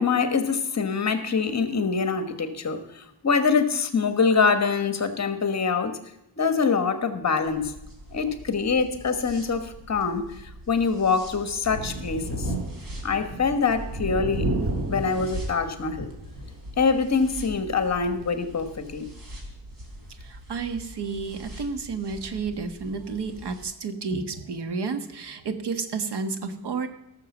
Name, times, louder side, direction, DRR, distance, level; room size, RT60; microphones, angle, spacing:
voice 1, 0.0-6.0 6.4-7.7 8.1-12.5 13.0-14.5 14.9-16.1 16.8-19.1, left 5 dB, 40° left, 9 dB, 1.3 m, -24 dB
sound 1, 7.4-23.6, equal, 55° right, 3.7 m, -43 dB
Thunder, 11.6-16.7 17.1-17.2 18.6-18.7, right 1 dB, 30° right, 2.3 m, -32 dB
voice 2, 20.2-26.9, right 4 dB, 75° right, 8 dB, 1.5 m, -31 dB
17.0 x 6.9 x 7.2 m, 0.85 s
wide cardioid pair, 150°, 41 cm